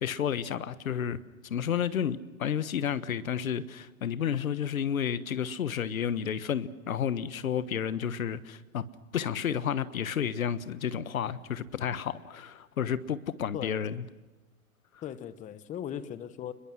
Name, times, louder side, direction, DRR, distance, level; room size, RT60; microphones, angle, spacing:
voice 1, 0.0-8.8 9.1-14.0, left 8 dB, 70° left, 1.3 m, -31 dB
voice 2, 15.0-16.5, left 9 dB, 15° left, 1.0 m, -38 dB
29.5 x 22.0 x 6.2 m
hypercardioid pair, 115°, 43 cm